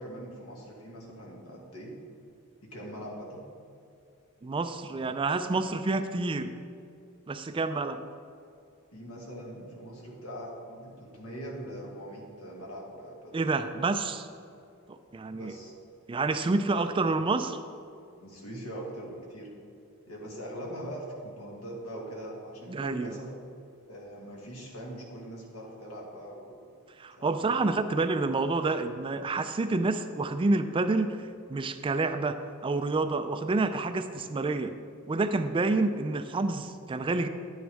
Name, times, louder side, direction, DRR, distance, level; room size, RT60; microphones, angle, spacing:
voice 1, 0.0-1.9 2.6-3.4 8.9-13.4 15.3-15.7 18.2-19.5 20.1-23.3 23.9-26.8 27.2-27.8, right 1 dB, 80° left, -2 dB, 2.1 m, -42 dB
voice 2, 4.4-6.5 7.3-8.0 13.3-14.3 14.9-15.5 16.1-17.6 22.7-23.2 27.0-32.4 32.6-34.8 35.1-37.3, right 3 dB, 25° right, 9 dB, 0.3 m, -28 dB
10.5 x 8.7 x 3.5 m, 2.4 s
head